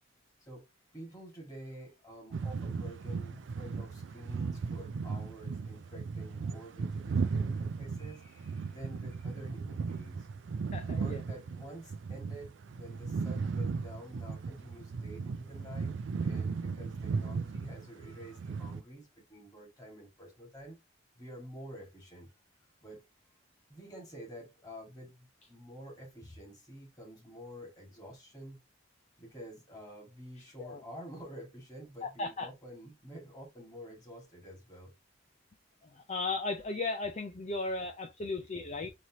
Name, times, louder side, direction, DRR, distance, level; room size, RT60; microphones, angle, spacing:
voice 1, 0.9-10.3 10.9-15.9 16.2-20.8 21.2-22.3 22.8-23.1 23.7-28.6 29.2-34.9, right 1 dB, 20° left, 2.1 m, -49 dB
sound 1, 2.3-18.8, right 4 dB, 65° right, 0.4 m, -36 dB
voice 2, 10.7-11.2 30.6-30.8 32.0-32.5 36.1-38.9, left 3 dB, 35° left, 0.5 m, -35 dB
4.1 x 3.1 x 2.9 m
head